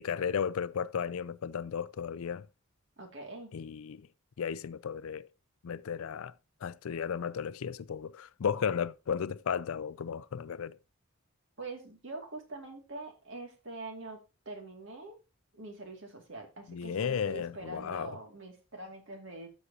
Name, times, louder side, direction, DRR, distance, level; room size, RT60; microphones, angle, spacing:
voice 1, 0.0-2.5 3.5-4.1 4.4-5.3 5.6-6.3 6.6-10.8 16.7-18.1, left 7 dB, 75° left, 0.4 m, -34 dB
voice 2, 3.0-3.5 11.6-14.2 14.5-15.2 15.5-19.5, right 2 dB, 55° right, 2.3 m, -44 dB
13.0 x 6.3 x 2.8 m
head